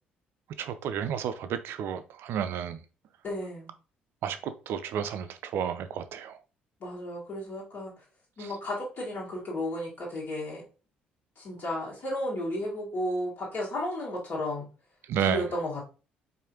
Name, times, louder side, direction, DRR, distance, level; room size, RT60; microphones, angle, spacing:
voice 1, 0.6-2.8 4.2-6.4 15.1-15.5, right 8 dB, 55° right, 0.4 m, -31 dB
voice 2, 3.2-3.7 6.8-7.9 8.4-10.6 11.3-14.7 15.2-15.8, left 1 dB, 45° left, 1.7 m, -33 dB
4.7 x 2.7 x 2.8 m
figure-of-eight pair, 45°, 5 cm